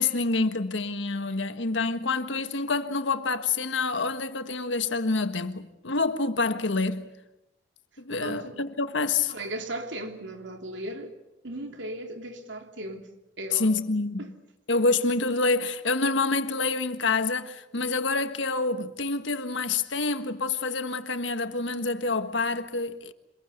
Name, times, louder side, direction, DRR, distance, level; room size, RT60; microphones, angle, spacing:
voice 1, 0.0-7.1 8.0-9.3 13.5-14.2 14.7-23.1, left 3 dB, 85° left, 1.6 m, -27 dB
voice 2, 8.2-8.6 9.2-11.1 11.4-13.1 13.4-13.7 14.2-14.3, right 1 dB, 85° right, 3.0 m, -37 dB
26.5 x 22.0 x 8.1 m
head